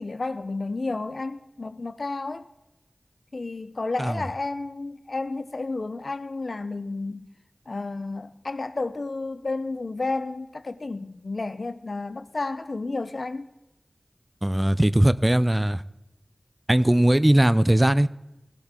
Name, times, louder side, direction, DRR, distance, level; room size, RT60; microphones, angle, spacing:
voice 1, 0.0-2.4 3.3-7.3 7.7-13.5, left 3 dB, 75° left, 0.5 m, -31 dB
voice 2, 14.4-15.8 16.7-18.1, right 1 dB, 20° right, 0.4 m, -19 dB
17.5 x 7.9 x 3.6 m
wide cardioid pair, 55°, 0 cm